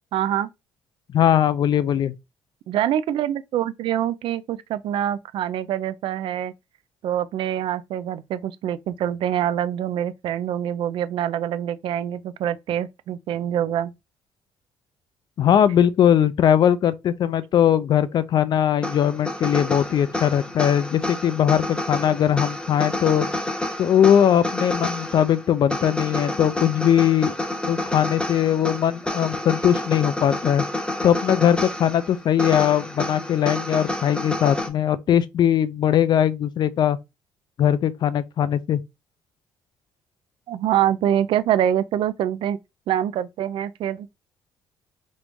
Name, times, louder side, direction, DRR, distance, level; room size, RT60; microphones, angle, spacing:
voice 1, 0.1-0.5 2.7-6.5 7.0-13.9 40.5-42.6 42.9-44.1, right 10 dB, 70° right, 0.4 m, -25 dB
voice 2, 1.1-2.1 15.4-23.3 23.8-27.3 27.7-30.7 31.0-37.0 37.6-38.8, left 9 dB, 50° left, 0.4 m, -20 dB
sound 1, 18.8-34.7, left 1 dB, 10° left, 0.7 m, -29 dB
3.0 x 2.5 x 3.4 m
cardioid pair, 95°, 9 cm